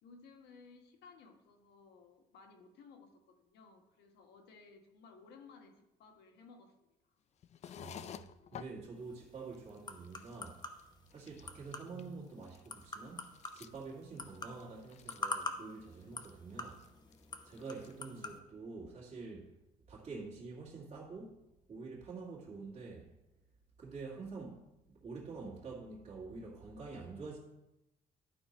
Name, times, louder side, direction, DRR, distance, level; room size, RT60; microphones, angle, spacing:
voice 1, 0.0-7.2, left 4 dB, 80° left, 1.3 m, -58 dB
sound 1, 7.4-8.7 9.3-9.4 9.5-9.8 10.0-10.8 11.1-12.1 12.4-15.5 15.8-16.3 16.7-17.3 17.5-18.0, left 9 dB, 40° left, 0.4 m, -51 dB
voice 2, 7.7-10.6 11.1-16.8 17.4-19.6 19.9-23.1 23.8-24.7 24.9-27.4, right 4 dB, 40° right, 2.2 m, -47 dB
sound 2, 9.0-18.4, left 3 dB, 25° left, 0.9 m, -46 dB
11.5 x 4.6 x 4.3 m
cardioid pair, 110°, 17 cm